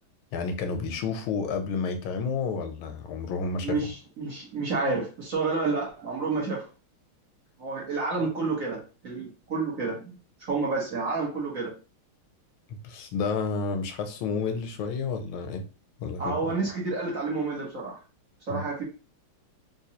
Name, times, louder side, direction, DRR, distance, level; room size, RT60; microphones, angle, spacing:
voice 1, 0.3-3.8 12.8-15.6 16.0-16.5 18.5-18.6, left 4 dB, 85° left, 6 dB, 1.5 m, -30 dB
voice 2, 3.6-6.6 7.6-10.1 10.5-11.7 16.2-18.0 18.5-18.8, right 3 dB, 45° right, -4 dB, 1.3 m, -29 dB
4.0 x 2.6 x 2.8 m, 0.33 s
omnidirectional pair, 2.3 m